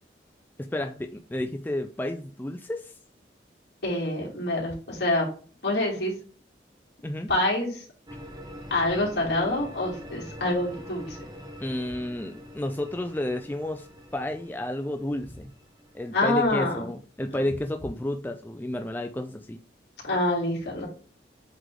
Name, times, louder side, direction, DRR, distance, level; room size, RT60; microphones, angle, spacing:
voice 1, 0.6-2.9 7.0-7.3 11.6-13.9 14.1-15.5 15.9-19.6, left 1 dB, 10° left, 5 dB, 0.4 m, -31 dB
voice 2, 3.8-5.3 5.6-6.1 7.3-7.9 8.7-11.2 16.1-16.8 20.0-20.9, left 1 dB, 70° left, -3 dB, 2.8 m, -26 dB
sound 1, 8.1-16.9, equal, 25° right, 0.9 m, -45 dB
7.9 x 3.3 x 3.8 m, 0.41 s
head